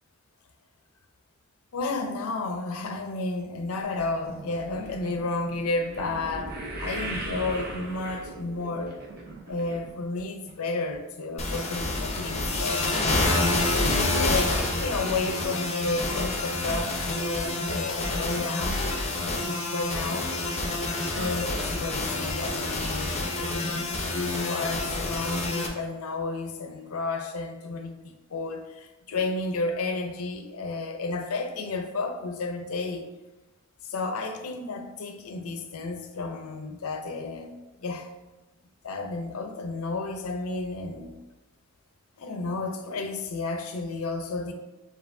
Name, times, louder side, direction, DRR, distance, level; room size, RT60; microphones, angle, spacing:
voice 1, 1.7-9.0 9.5-13.1 13.8-20.3 21.1-33.1 33.8-38.1 38.8-41.2 42.2-44.5, left 3 dB, 85° left, 0.5 m, -32 dB
sound 1, 3.8-10.2 10.5-11.0 11.5-11.6 11.9-12.0, right 2 dB, 50° right, 0.8 m, -39 dB
sound 2, 11.4-25.7, left 2 dB, 30° left, 0.7 m, -28 dB
6.9 x 2.7 x 2.6 m
head